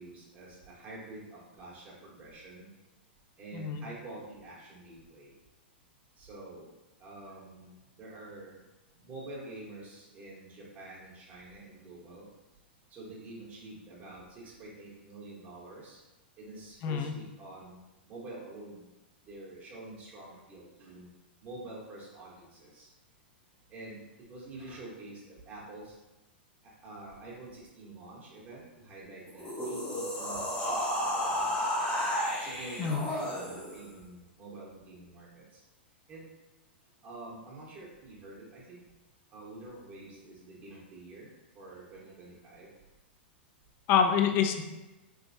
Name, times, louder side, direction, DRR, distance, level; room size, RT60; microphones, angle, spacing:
voice 1, 0.0-2.7 3.4-5.3 6.2-6.7 7.0-8.5 9.0-12.3 12.9-16.0 16.4-18.9 19.2-21.1 21.4-22.9 23.7-24.0 24.3-26.0 26.6-31.7 32.4-35.6 36.1-36.3 37.0-38.8 39.3-41.3 41.5-42.7, right 2 dB, 25° right, -6 dB, 1.3 m, -47 dB
voice 2, 3.5-3.8 16.8-17.1 32.8-33.0 43.9-44.6, left 7 dB, 40° left, 6 dB, 0.4 m, -26 dB
sound 1, 29.3-33.9, equal, 20° left, 1.1 m, -32 dB
3.3 x 3.1 x 2.7 m, 1.1 s
hypercardioid pair, 110°, 6 cm